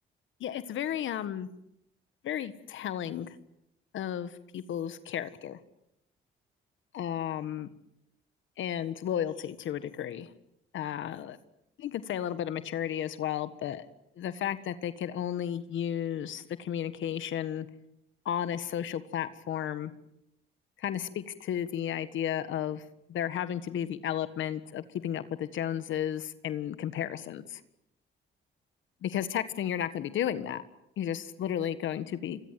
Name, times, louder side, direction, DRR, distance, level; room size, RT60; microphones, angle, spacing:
voice 1, 0.4-1.5 2.2-3.3 3.9-5.6 6.9-7.7 8.6-10.3 10.7-11.4 11.8-17.7 18.2-19.9 20.8-22.8 23.1-27.6 29.0-30.6 31.0-32.4, left 10 dB, 75° left, 12 dB, 1.6 m, -33 dB
28.5 x 23.0 x 7.6 m, 0.78 s
cardioid pair, 90°, 20 cm